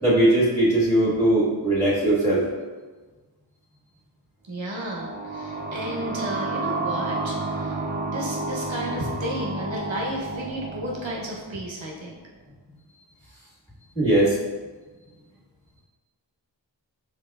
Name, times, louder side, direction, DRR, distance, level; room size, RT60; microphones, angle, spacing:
voice 1, 0.0-2.4 13.9-14.3, right 1 dB, 5° left, -7 dB, 1.4 m, -20 dB
voice 2, 4.5-12.2, equal, 90° right, -2 dB, 0.9 m, -33 dB
sound 1, 4.7-12.1, right 3 dB, 25° right, 0.4 m, -31 dB
5.3 x 3.3 x 2.3 m, 1.3 s
wide cardioid pair, 40°, 45 cm